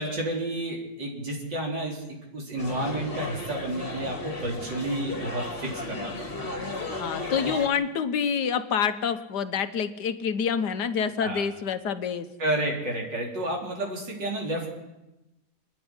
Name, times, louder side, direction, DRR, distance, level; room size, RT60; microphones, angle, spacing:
voice 1, 0.0-2.1 2.3-7.5 11.2-11.4 12.4-14.7, right 1 dB, 85° right, -1 dB, 4.8 m, -31 dB
sound 1, 2.6-7.7, left 2 dB, 30° left, 2.6 m, -35 dB
voice 2, 7.0-12.3, left 7 dB, 70° left, 10 dB, 1.7 m, -27 dB
28.0 x 10.0 x 9.9 m, 1.0 s
omnidirectional pair, 1.9 m